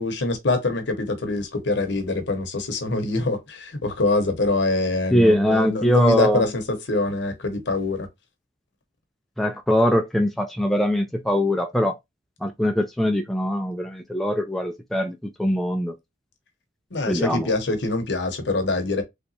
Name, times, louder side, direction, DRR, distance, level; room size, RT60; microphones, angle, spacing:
voice 1, 0.0-6.6 6.9-8.1 16.9-19.0, left 2 dB, 60° left, 0.8 m, -24 dB
voice 2, 5.1-6.5 9.4-11.9 12.4-16.0 17.1-17.5, equal, ahead, 0.3 m, -22 dB
3.3 x 2.9 x 2.7 m
head